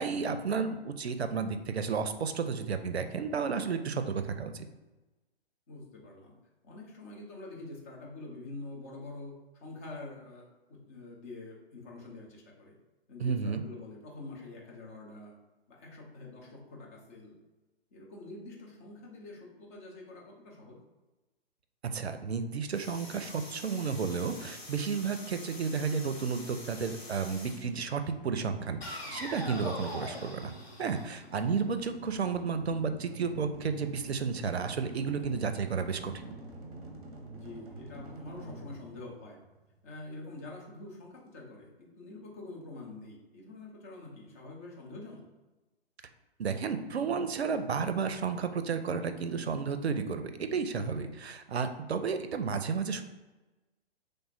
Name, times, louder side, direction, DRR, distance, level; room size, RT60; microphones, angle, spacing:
voice 1, 0.0-4.6 13.2-13.6 21.8-30.5 30.8-36.3 46.4-53.0, right 5 dB, 80° right, 8 dB, 0.5 m, -32 dB
voice 2, 5.7-6.3 6.6-12.8 13.1-15.3 15.7-17.4 17.9-20.8 30.9-31.3 37.3-39.4 39.8-45.3 50.9-51.2, left 2 dB, 15° left, -2 dB, 0.4 m, -46 dB
sound 1, 22.7-27.7 28.8-31.7, left 1 dB, 70° left, 1.2 m, -44 dB
sound 2, 29.0-40.0, right 2 dB, 35° right, 0.6 m, -48 dB
3.3 x 2.1 x 4.1 m, 1.1 s
figure-of-eight pair, 120°, 32 cm